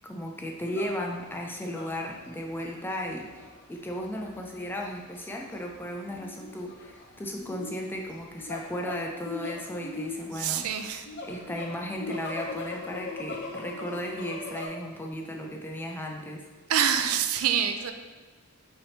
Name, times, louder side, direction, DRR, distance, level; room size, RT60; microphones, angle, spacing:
voice 1, 0.0-10.7 11.2-16.5, equal, 10° left, 1 dB, 0.4 m, -35 dB
sound 1, 0.7-14.7, left 3 dB, 55° left, 0.6 m, -40 dB
voice 2, 10.3-11.1 16.7-17.9, right 8 dB, 75° right, 7 dB, 0.4 m, -26 dB
5.6 x 3.4 x 2.8 m, 1.3 s
head